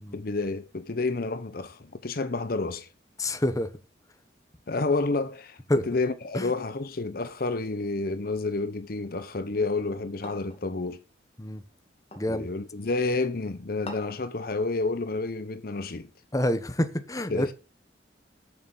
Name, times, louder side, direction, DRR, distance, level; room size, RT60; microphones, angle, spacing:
voice 1, 0.1-2.9 4.7-5.6 5.9-11.0 12.3-16.1 17.3-17.5, left 3 dB, 55° left, 0.8 m, -29 dB
voice 2, 3.2-3.7 5.7-5.9 6.3-6.5 11.4-11.6 12.2-12.5 16.3-17.5, left 1 dB, 20° left, 1.0 m, -27 dB
sound 1, 10.2-10.7 12.1-12.4 13.9-14.3, left 2 dB, 35° left, 2.4 m, -42 dB
7.3 x 6.6 x 8.0 m
head